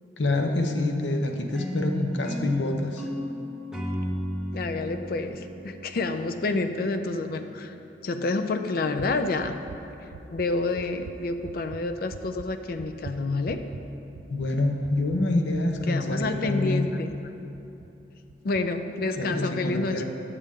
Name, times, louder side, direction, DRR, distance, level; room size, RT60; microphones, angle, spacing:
voice 1, 0.2-3.1 14.3-16.8 19.2-20.0, left 2 dB, 85° left, 4 dB, 0.7 m, -26 dB
sound 1, 1.5-6.7, equal, 5° right, 0.7 m, -34 dB
voice 2, 4.5-7.7 8.0-9.5 10.3-13.6 15.9-17.1 18.4-20.0, left 3 dB, 55° left, 7 dB, 0.4 m, -28 dB
sound 2, 8.9-17.9 18.3-18.6 19.0-19.3, right 4 dB, 75° right, 0.3 m, -45 dB
8.6 x 6.7 x 3.6 m, 2.9 s
head